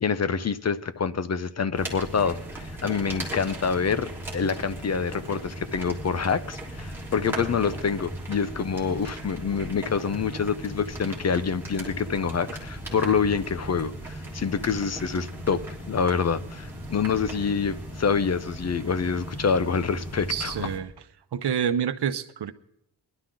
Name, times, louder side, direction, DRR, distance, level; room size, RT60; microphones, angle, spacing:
voice 1, 0.0-20.7, left 6 dB, 40° left, 0.5 m, -26 dB
sound 1, 1.7-20.8, right 1 dB, 5° right, 3.1 m, -37 dB
voice 2, 20.3-20.9 21.3-22.5, right 8 dB, 75° right, 0.8 m, -27 dB
21.0 x 11.5 x 3.8 m
wide cardioid pair, 170°, 41 cm